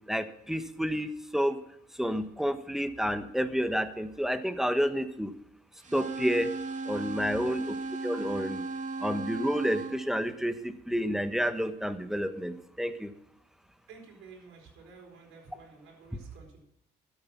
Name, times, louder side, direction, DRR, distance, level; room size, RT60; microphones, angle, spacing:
voice 1, 0.1-1.6 2.0-5.3 5.9-6.5 6.8-7.8 8.0-8.6 9.0-13.1, equal, ahead, 10 dB, 1.1 m, -30 dB
sound 1, 5.8-10.0, right 3 dB, 40° right, 2.7 m, -36 dB
voice 2, 13.9-16.6, right 5 dB, 85° right, 1 dB, 4.3 m, -51 dB
12.0 x 8.2 x 5.9 m, 0.80 s
cardioid pair, 90°, 20 cm